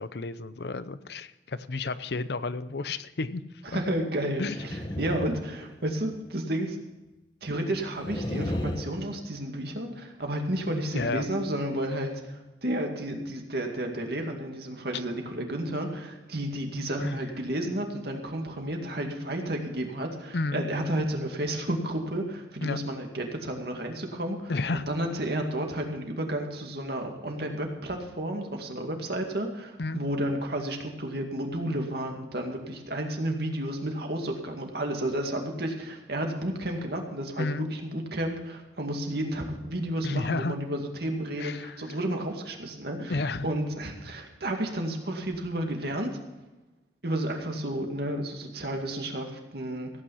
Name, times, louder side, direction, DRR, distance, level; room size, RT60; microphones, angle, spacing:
voice 1, 0.0-3.4 3.7-3.8 4.4-4.6 10.9-11.2 17.0-17.2 20.3-20.6 22.6-22.8 24.5-24.9 29.8-30.0 37.4-37.7 40.0-40.5 41.4-41.8 43.1-43.5, left 3 dB, 65° left, 14 dB, 0.6 m, -31 dB
voice 2, 3.6-6.8 7.4-46.2 47.0-49.9, right 1 dB, 60° right, 3 dB, 2.3 m, -32 dB
sound 1, 4.3-6.1 7.9-8.9, left 1 dB, 25° left, 1.0 m, -34 dB
16.0 x 9.0 x 5.7 m, 1.1 s
head